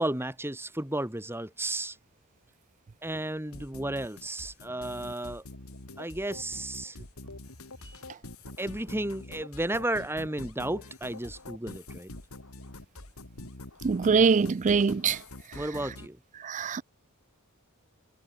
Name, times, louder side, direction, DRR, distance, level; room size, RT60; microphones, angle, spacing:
voice 1, 0.0-2.0 3.0-5.4 6.0-7.0 7.8-8.0 8.6-12.1 15.5-16.2, right 1 dB, 10° right, 2.4 m, -33 dB
sound 1, 3.5-16.1, left 2 dB, 75° left, 3.5 m, -45 dB
voice 2, 13.8-15.2 16.4-16.8, right 5 dB, 35° right, 0.4 m, -23 dB
head